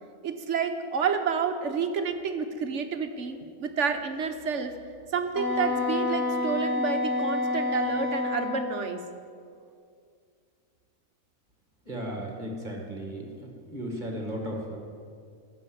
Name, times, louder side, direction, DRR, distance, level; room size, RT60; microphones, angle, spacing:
voice 1, 0.2-4.7 5.1-9.0, right 6 dB, 60° right, 7 dB, 1.3 m, -29 dB
Wind instrument woodwind instrument, 5.3-8.8, left 3 dB, 15° right, 1.1 m, -28 dB
voice 2, 11.9-13.3 13.7-14.8, equal, 35° right, 1 dB, 2.0 m, -35 dB
15.0 x 6.3 x 10.0 m, 2.3 s
omnidirectional pair, 1.4 m